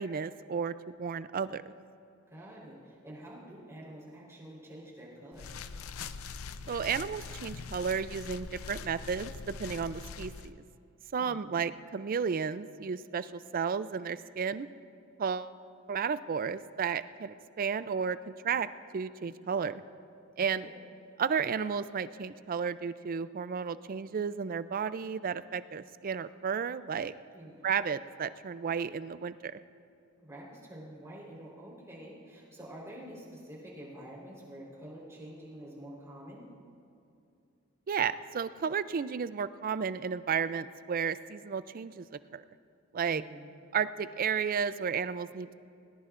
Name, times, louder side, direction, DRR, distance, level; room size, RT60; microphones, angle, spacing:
voice 1, 0.0-1.8 6.7-10.6 11.1-14.7 15.2-15.5 15.9-18.7 18.9-19.8 20.4-20.7 21.2-27.1 27.6-29.6 37.9-42.4 42.9-43.2 43.7-45.5, right 6 dB, 45° right, 14 dB, 0.4 m, -33 dB
voice 2, 2.3-5.5 11.1-11.6 20.4-20.8 27.3-27.6 30.2-36.5 43.1-43.5, equal, 15° right, -5 dB, 3.9 m, -48 dB
sound 1, 5.3-10.5, left 5 dB, 85° left, 0.5 m, -43 dB
21.0 x 18.5 x 2.5 m, 2.6 s
head